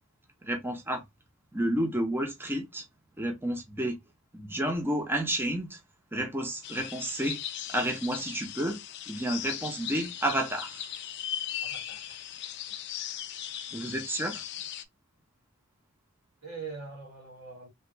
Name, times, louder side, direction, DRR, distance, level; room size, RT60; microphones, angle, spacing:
voice 1, 0.4-1.0 1.5-2.8 3.2-4.0 4.3-5.8 6.1-7.4 7.7-8.8 9.1-10.8 13.7-14.4, right 1 dB, 10° right, 0.6 m, -30 dB
sound 1, 6.6-14.8, left 10 dB, 55° left, 0.4 m, -38 dB
voice 2, 11.6-12.1 14.5-14.7 16.4-17.7, right 4 dB, 80° right, 2.0 m, -43 dB
3.3 x 2.3 x 2.9 m
head